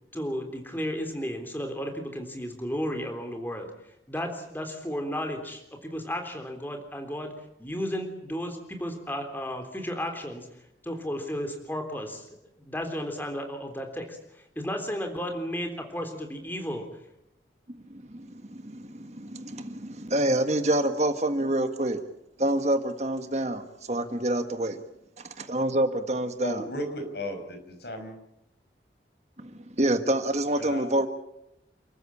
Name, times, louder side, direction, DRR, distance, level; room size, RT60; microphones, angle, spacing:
voice 1, 0.1-7.3 7.6-10.5 10.8-12.3 12.6-16.9, equal, 10° left, 4 dB, 3.5 m, -33 dB
voice 2, 17.9-22.0 22.4-24.8 25.2-26.6 29.4-31.1, right 1 dB, 35° right, 8 dB, 1.6 m, -27 dB
voice 3, 26.4-28.2 30.5-30.9, equal, 60° left, 5 dB, 5.9 m, -35 dB
29.5 x 14.5 x 8.6 m, 0.85 s
head